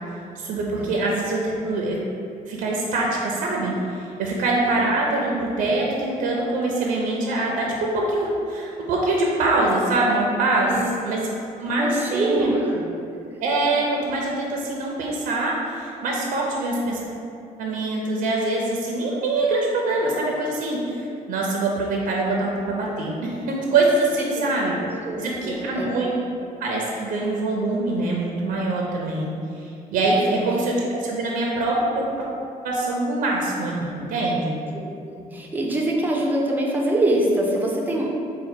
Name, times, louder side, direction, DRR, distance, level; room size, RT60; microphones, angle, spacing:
voice 1, 0.4-2.0 2.4-10.7 11.0-11.2 11.6-12.8 13.4-17.1 17.6-24.8 25.2-26.1 26.6-32.3 32.6-34.6, right 2 dB, 75° right, -2 dB, 0.5 m, -24 dB
voice 2, 10.7-11.0 11.8-12.8 24.8-25.9 30.2-30.4 34.7-38.1, right 1 dB, 10° right, -2 dB, 0.4 m, -24 dB
4.2 x 2.1 x 4.3 m, 2.5 s
cardioid pair, 160°, 14 cm